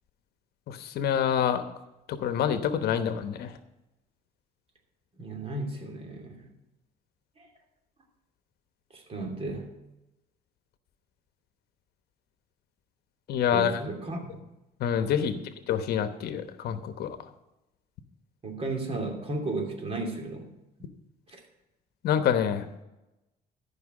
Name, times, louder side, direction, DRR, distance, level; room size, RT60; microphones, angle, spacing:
voice 1, 0.7-1.6 2.1-3.5 13.3-13.8 14.8-15.3 15.7-17.2 22.0-22.7, left 9 dB, 70° left, 10 dB, 1.0 m, -27 dB
voice 2, 5.2-6.5 7.4-7.5 8.9-9.7 13.5-14.4 15.3-15.4 18.4-20.5 21.3-21.4, right 2 dB, 35° right, 2 dB, 3.0 m, -34 dB
13.5 x 5.7 x 8.2 m, 0.97 s
cardioid pair, 110°, 17 cm